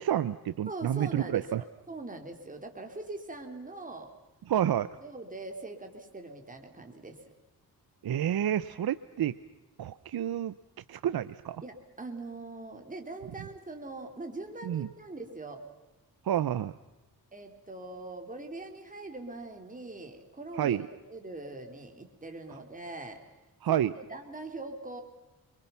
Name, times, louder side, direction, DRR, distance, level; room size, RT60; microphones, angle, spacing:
voice 1, 0.0-1.6 4.5-4.9 8.0-9.3 9.8-10.5 10.9-11.6 14.6-14.9 16.2-16.7 20.6-20.9 23.6-23.9, right 10 dB, 70° right, 13 dB, 0.8 m, -29 dB
voice 2, 0.7-4.1 5.0-7.2 11.6-15.6 17.3-20.8 21.1-23.2 23.7-25.0, right 2 dB, 20° right, 3 dB, 3.5 m, -42 dB
29.0 x 24.0 x 5.8 m, 1.1 s
cardioid pair, 95°, 37 cm